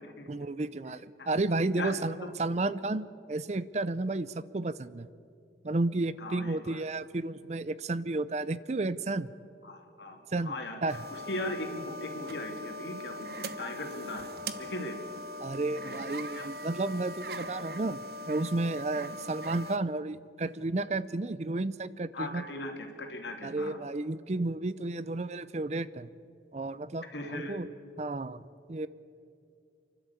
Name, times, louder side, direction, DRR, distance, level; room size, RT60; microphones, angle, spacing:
voice 1, 0.3-5.1 5.6-9.3 10.3-10.5 10.8-11.0 15.4-18.0 18.3-22.4 23.4-26.1 26.5-27.1 27.3-27.7 28.0-28.4 28.7-28.9, right 2 dB, 40° right, 16 dB, 0.5 m, -32 dB
voice 2, 6.2-6.8 9.6-14.3 14.6-15.0 15.8-16.4 22.1-23.8 27.1-27.6, left 1 dB, 80° left, 3 dB, 2.7 m, -39 dB
sound 1, 10.9-19.8, equal, 60° right, 1.0 m, -41 dB
29.5 x 12.0 x 8.3 m, 2.5 s
head